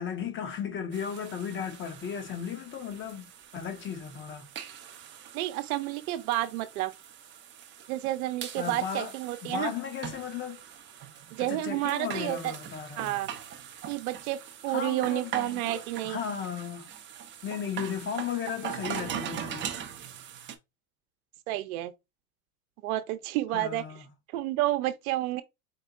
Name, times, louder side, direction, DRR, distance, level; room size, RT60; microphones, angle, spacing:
voice 1, 0.0-4.5 8.6-9.1 9.4-10.6 11.4-13.1 14.7-16.9 17.4-19.7 23.5-24.0, left 7 dB, 25° left, 0.9 m, -35 dB
sound 1, 0.9-20.6, right 9 dB, 25° right, 0.6 m, -42 dB
voice 2, 5.3-6.9 7.9-9.7 11.3-12.5 13.0-13.3 13.9-16.2 21.5-21.9 22.8-23.8 24.3-25.4, right 15 dB, 65° right, 0.9 m, -30 dB
4.5 x 2.1 x 3.8 m
supercardioid pair, 120°, 47 cm